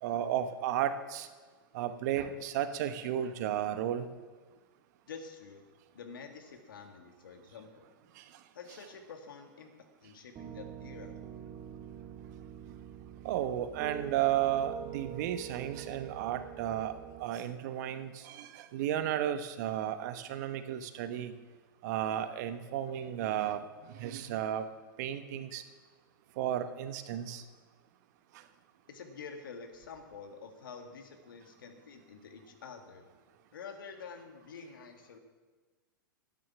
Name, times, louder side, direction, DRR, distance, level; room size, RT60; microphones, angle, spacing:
voice 1, 0.0-1.3 1.7-4.1 8.2-8.3 13.2-16.9 17.2-21.3 21.8-23.6 24.0-24.6 25.0-25.6 26.4-27.4, right 11 dB, 55° right, 10 dB, 1.0 m, -33 dB
voice 2, 5.1-5.6 5.9-7.9 8.5-9.7 10.0-11.2 28.9-33.0 33.5-35.2, left 5 dB, 70° left, 5 dB, 1.9 m, -48 dB
Piano, 10.4-17.2, right 10 dB, 30° right, 0.9 m, -45 dB
12.5 x 9.4 x 6.0 m, 1.4 s
hypercardioid pair, 105°, 11 cm